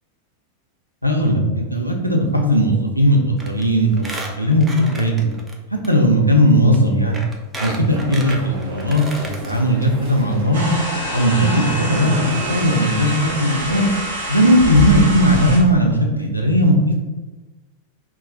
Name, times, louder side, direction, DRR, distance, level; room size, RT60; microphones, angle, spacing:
voice 1, 1.0-4.1 4.4-4.7 4.9-5.3 5.9-7.2 7.6-10.8 11.1-13.9 14.3-16.8, equal, 90° left, 0 dB, 0.5 m, -17 dB
Squeak, 3.4-3.6 3.9-5.5 5.8-5.9 6.7-6.8 7.1-9.5 9.9-10.0 10.2-10.3, right 2 dB, 15° right, 0.5 m, -32 dB
sound 1, 7.9-13.9, right 1 dB, 45° right, 0.9 m, -34 dB
sound 2, 10.5-15.6, equal, 70° right, 1.0 m, -25 dB
3.0 x 2.4 x 3.8 m, 1.2 s
figure-of-eight pair, 90°, 0 cm